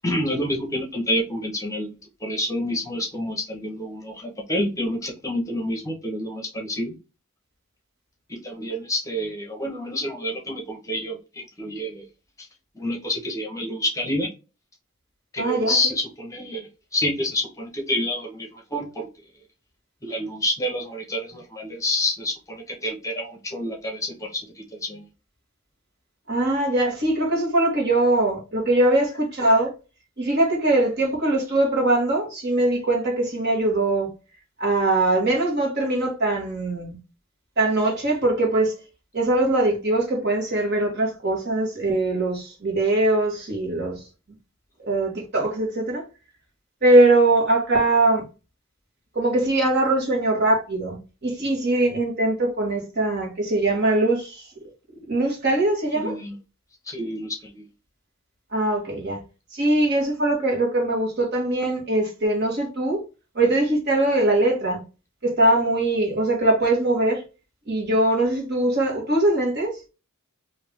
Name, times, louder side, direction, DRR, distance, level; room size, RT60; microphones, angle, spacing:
voice 1, 0.0-1.9 2.2-6.9 8.3-12.0 12.4-12.5 12.7-14.3 15.3-19.1 20.0-25.1 55.9-56.4 56.8-57.6, left 1 dB, 15° left, 0.9 m, -28 dB
voice 2, 15.4-15.7 26.3-29.7 30.2-34.1 34.6-36.9 37.6-38.7 39.1-44.0 44.9-46.0 46.8-48.2 49.1-54.4 55.1-56.1 58.5-59.2 59.5-63.0 63.3-64.8 65.2-67.2 67.7-69.8, right 2 dB, 50° right, 1.5 m, -21 dB
3.3 x 2.7 x 3.5 m
head